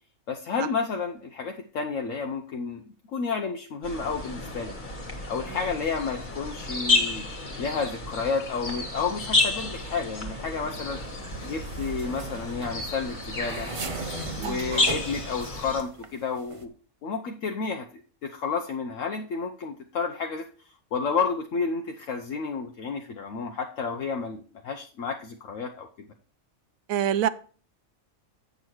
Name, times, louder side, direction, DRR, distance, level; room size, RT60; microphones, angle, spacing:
voice 1, 0.3-2.8 3.1-4.7 5.3-7.3 7.6-11.0 11.4-13.7 14.4-16.7 17.0-17.8 18.2-20.4 20.9-26.1, left 5 dB, 70° left, 3 dB, 1.2 m, -31 dB
sound 1, 3.8-15.8, left 3 dB, 35° left, 1.7 m, -31 dB
sound 2, 10.7-16.1 16.4-16.7, right 3 dB, 30° right, 0.7 m, -38 dB
voice 2, 14.4-14.8 26.9-27.3, right 10 dB, 85° right, 14 dB, 1.1 m, -26 dB
8.1 x 6.4 x 4.5 m, 0.41 s
omnidirectional pair, 1.4 m